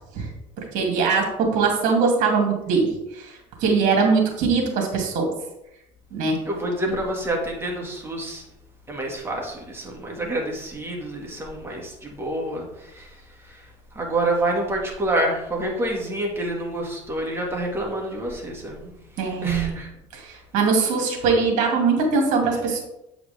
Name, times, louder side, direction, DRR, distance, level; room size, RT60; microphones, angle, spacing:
voice 1, 0.6-2.9 3.2-3.3 3.6-5.3 6.1-6.4 19.2-19.7 20.1-20.2 20.5-22.8, right 4 dB, 65° right, 1 dB, 2.4 m, -21 dB
voice 2, 6.5-8.4 8.9-19.0 19.4-19.9, right 1 dB, 15° right, -1 dB, 2.0 m, -28 dB
8.0 x 5.0 x 3.5 m, 0.86 s
supercardioid pair, 105°, 14 cm